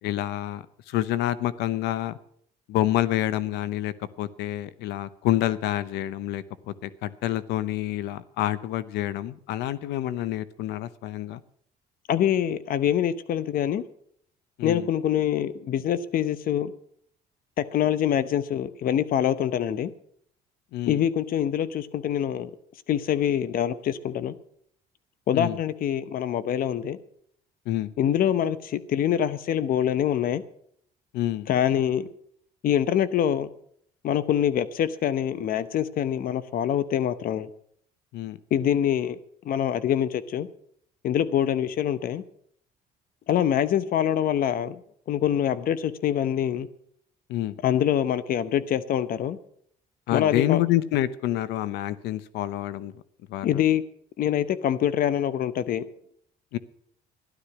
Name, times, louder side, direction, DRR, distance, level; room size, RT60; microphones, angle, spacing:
voice 1, 0.0-2.2 2.7-11.4 14.6-14.9 20.7-21.0 25.3-25.6 27.7-27.9 31.1-31.5 38.1-38.4 47.3-47.6 50.1-52.9 53.3-53.6 56.5-56.6, left 13 dB, 85° left, 16 dB, 0.8 m, -28 dB
voice 2, 12.1-13.8 14.6-16.7 17.6-19.9 20.9-22.5 22.9-24.3 25.3-27.0 28.0-30.4 31.5-32.1 32.6-33.5 34.0-37.5 38.5-39.2 39.4-40.5 41.0-42.2 43.3-44.8 45.1-46.7 47.6-49.4 50.1-50.6 53.4-53.8 54.2-55.8, left 10 dB, 60° left, 15 dB, 0.9 m, -25 dB
13.0 x 12.0 x 6.0 m, 0.65 s
cardioid pair, 110°, 17 cm